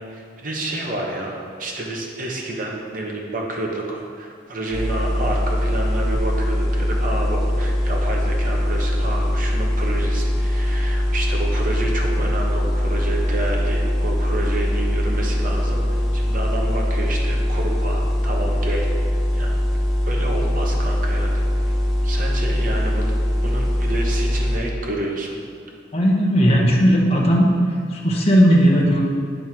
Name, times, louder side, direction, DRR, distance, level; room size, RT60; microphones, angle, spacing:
voice 1, 0.0-19.6 20.1-21.7 22.0-25.4, right 2 dB, 45° right, -1 dB, 1.0 m, -29 dB
sound 1, 4.7-24.6, equal, ahead, 1.1 m, -21 dB
voice 2, 25.9-27.5 27.9-29.0, equal, 30° left, -3 dB, 0.9 m, -16 dB
8.9 x 3.6 x 4.5 m, 2.2 s
head